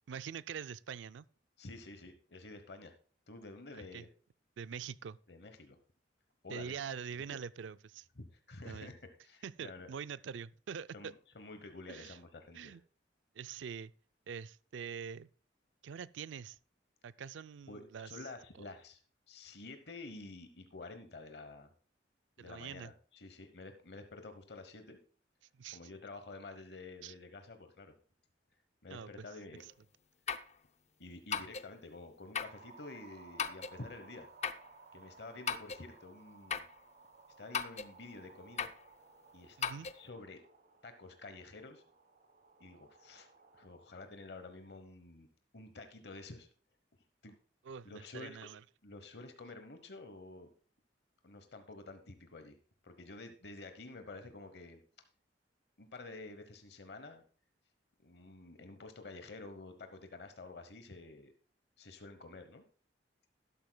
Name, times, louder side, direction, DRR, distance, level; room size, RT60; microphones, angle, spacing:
voice 1, 0.1-1.3 3.9-4.1 4.6-5.2 6.5-8.1 8.6-8.9 9.4-11.1 11.9-12.2 12.5-12.8 13.4-13.9 14.3-15.3 15.8-16.6 17.0-18.1 22.4-22.9 25.6-25.8 27.0-27.1 28.9-29.1 39.6-39.9 47.6-48.6, right 7 dB, 85° right, 0.4 m, -44 dB
voice 2, 1.6-2.9 3.3-4.1 5.3-5.8 6.4-6.7 8.2-9.9 10.9-12.8 17.7-19.0 19.3-21.7 22.4-25.0 25.7-27.9 28.8-29.6 31.0-34.3 34.9-36.7 37.4-38.7 39.3-39.6 39.9-40.4 40.8-41.8 42.6-43.3 43.5-45.3 45.5-46.5 47.2-47.4 47.8-48.4 48.8-50.5 51.2-52.6 52.8-54.8 55.8-57.2 58.0-61.3 61.8-62.6, left 3 dB, 60° left, 1.0 m, -50 dB
sound 1, 29.6-29.7 30.3-30.5 31.3-31.7 32.3-32.6 33.4-33.8 34.4-34.7 35.5-35.8 36.5-36.7 37.5-37.9 38.6-38.8 39.6-40.0, left 6 dB, 35° left, 0.5 m, -37 dB
sound 2, 32.4-43.7, right 4 dB, 50° right, 1.4 m, -59 dB
12.0 x 12.0 x 2.2 m
head